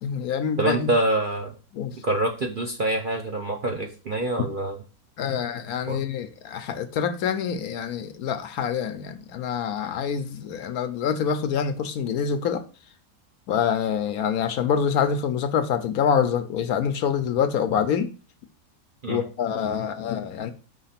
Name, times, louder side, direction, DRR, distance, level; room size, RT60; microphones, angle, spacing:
voice 1, 0.0-0.9 1.7-1.9 5.2-12.6 13.5-18.1 19.1-20.5, left 7 dB, 70° left, 1.1 m, -26 dB
voice 2, 0.6-1.6 2.0-4.8 5.9-6.0 19.0-19.2, right 1 dB, 50° right, 0.6 m, -25 dB
5.6 x 3.3 x 5.7 m
omnidirectional pair, 1.7 m